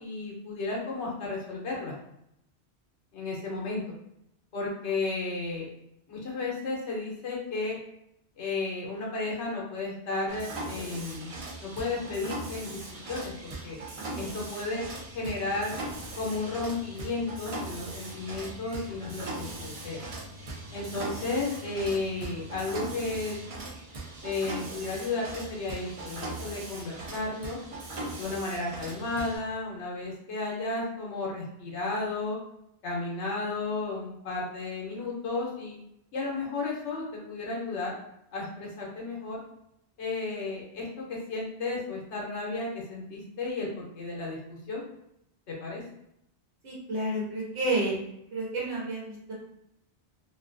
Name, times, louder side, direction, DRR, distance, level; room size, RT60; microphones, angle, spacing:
voice 1, 0.0-1.9 3.1-3.8 4.5-5.7 6.1-7.8 8.4-11.3 11.6-13.8 14.1-14.8 15.1-15.8 16.2-20.0 20.7-23.4 24.2-27.6 28.2-32.4 32.8-35.8 36.1-37.9 38.3-39.4 40.0-44.4 44.7-44.8 45.5-45.8, left 3 dB, 85° left, -3 dB, 1.1 m, -33 dB
Mechanisms, 10.3-29.4, right 2 dB, 45° right, 0.4 m, -39 dB
voice 2, 46.6-48.0 48.3-49.3, right 2 dB, 75° right, -5 dB, 1.0 m, -30 dB
2.6 x 2.3 x 2.5 m, 0.78 s
omnidirectional pair, 1.1 m